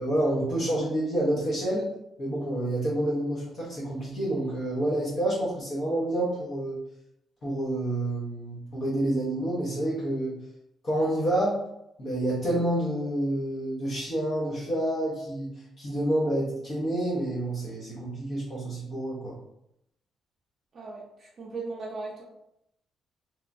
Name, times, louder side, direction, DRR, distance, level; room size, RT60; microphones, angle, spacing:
voice 1, 0.0-1.9 2.2-6.8 7.4-10.4 10.8-11.6 12.0-19.4, right 1 dB, 50° left, -7 dB, 0.8 m, -28 dB
voice 2, 20.7-22.2, right 3 dB, 50° right, -4 dB, 0.6 m, -37 dB
3.0 x 2.2 x 2.5 m, 0.80 s
cardioid pair, 90°, 0 cm